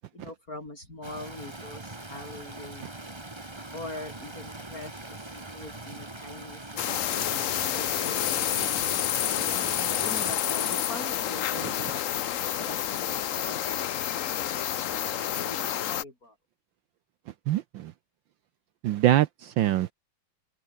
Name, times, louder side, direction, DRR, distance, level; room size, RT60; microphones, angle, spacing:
voice 1, 0.1-2.9 3.7-8.9 9.5-14.6 15.2-16.4, left 2 dB, 40° left, 7.3 m, -43 dB
Stream, 1.0-10.3, right 2 dB, 15° right, 1.9 m, -42 dB
sound 1, 6.8-16.0, left 11 dB, 65° left, 0.8 m, -29 dB
voice 2, 17.5-17.9 18.8-19.9, right 13 dB, 70° right, 1.4 m, -24 dB
open air
omnidirectional pair, 2.3 m